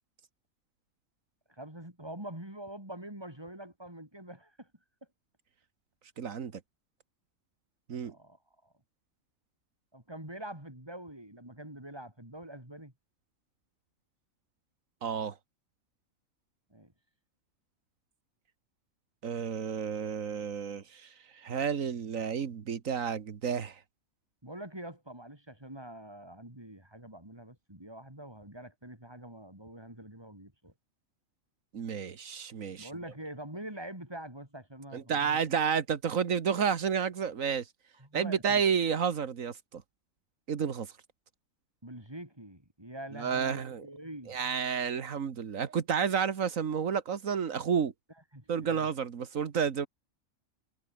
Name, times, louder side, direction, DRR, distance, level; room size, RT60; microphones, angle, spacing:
voice 1, 1.5-4.7 8.0-8.7 9.9-12.9 16.7-16.9 24.4-30.7 32.8-35.4 38.0-38.6 41.8-44.4 48.3-48.9, right 1 dB, 20° right, 5.1 m, -45 dB
voice 2, 6.2-6.5 7.9-8.1 15.0-15.4 19.2-23.8 31.7-32.9 34.9-37.7 38.1-39.8 40.5-40.9 43.1-43.9 44.3-47.9 48.5-49.9, right 7 dB, 85° right, 1.8 m, -31 dB
omnidirectional pair, 1.4 m